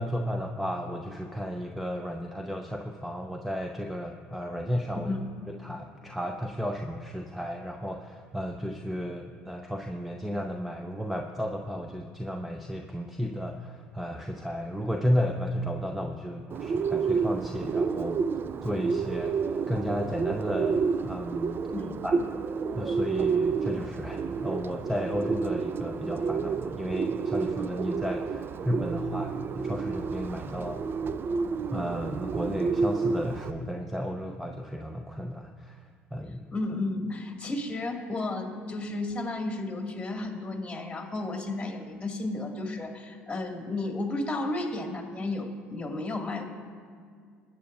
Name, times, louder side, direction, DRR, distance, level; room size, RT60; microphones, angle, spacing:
voice 1, 0.0-5.2 5.5-18.2 18.6-21.6 22.0-22.2 22.8-30.8 31.7-36.5, equal, ahead, 4 dB, 0.7 m, -33 dB
Bird, 16.5-33.5, right 5 dB, 40° right, 0.4 m, -30 dB
voice 2, 36.5-46.5, left 2 dB, 20° left, 2 dB, 2.2 m, -33 dB
21.0 x 9.2 x 2.6 m, 2.1 s
hypercardioid pair, 60°, 6 cm